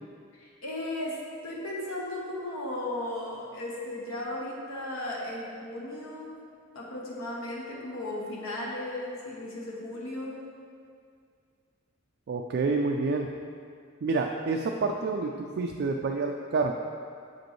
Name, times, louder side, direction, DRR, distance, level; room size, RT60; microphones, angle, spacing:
voice 1, 0.3-1.2 1.4-6.3 6.7-10.4, left 1 dB, 75° left, -4 dB, 1.0 m, -36 dB
voice 2, 12.3-13.3 14.0-16.7, right 3 dB, 50° right, 2 dB, 0.3 m, -28 dB
7.6 x 5.1 x 3.1 m, 2.2 s
head